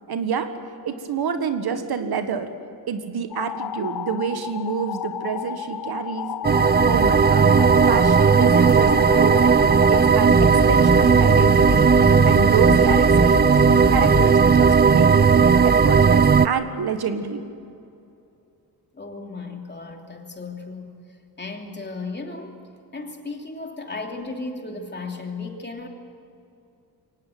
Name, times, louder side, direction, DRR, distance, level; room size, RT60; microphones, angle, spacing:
voice 1, 0.1-0.5 0.8-2.5 2.9-6.3 6.8-7.5 7.8-11.9 12.3-13.3 13.9-17.5, right 6 dB, 75° right, 8 dB, 1.7 m, -27 dB
sound 1, 3.3-10.1, left 10 dB, 85° left, 0.9 m, -33 dB
sound 2, 6.4-16.5, right 5 dB, 25° right, 0.6 m, -16 dB
sound 3, 8.5-9.2 9.9-10.0 10.3-14.5, left 6 dB, 70° left, 3.4 m, -28 dB
voice 2, 18.9-21.0 21.4-22.6 22.9-25.9, left 3 dB, 25° left, 2 dB, 2.9 m, -35 dB
23.0 x 18.0 x 9.4 m, 2.6 s
wide cardioid pair, 115°, 38 cm